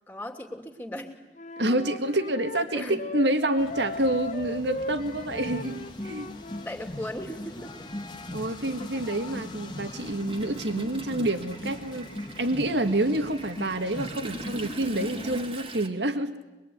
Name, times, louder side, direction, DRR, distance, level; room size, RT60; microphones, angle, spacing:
voice 1, 0.1-1.1 2.7-3.0 6.6-7.9, left 1 dB, 10° left, 3 dB, 2.9 m, -37 dB
Wind instrument woodwind instrument, 1.4-6.7, left 2 dB, 40° left, 1.1 m, -38 dB
voice 2, 1.6-6.3 8.3-16.4, right 1 dB, 80° right, 8 dB, 2.0 m, -28 dB
sound 1, 3.6-15.5, left 1 dB, 25° left, 1.8 m, -40 dB
Toilet flush, 5.4-5.5 6.8-6.9 7.3-15.9, right 1 dB, 30° right, 2.4 m, -42 dB
25.0 x 22.5 x 9.6 m, 1.1 s
head